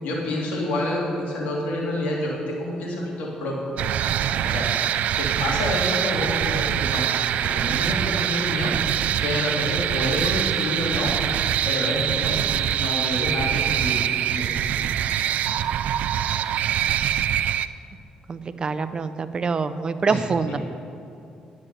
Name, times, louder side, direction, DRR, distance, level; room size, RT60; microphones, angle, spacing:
voice 1, 0.0-3.5 4.4-4.7 5.2-7.0 7.4-8.7 9.2-11.1 11.6-14.1 14.3-14.9 20.0-20.2, left 1 dB, 75° left, -3 dB, 2.6 m, -28 dB
sound 1, 3.8-17.7, right 10 dB, 75° right, 0.3 m, -24 dB
voice 2, 18.3-20.6, right 4 dB, 35° right, 11 dB, 0.6 m, -25 dB
10.5 x 7.4 x 6.8 m, 2.6 s
cardioid pair, 80°, 2 cm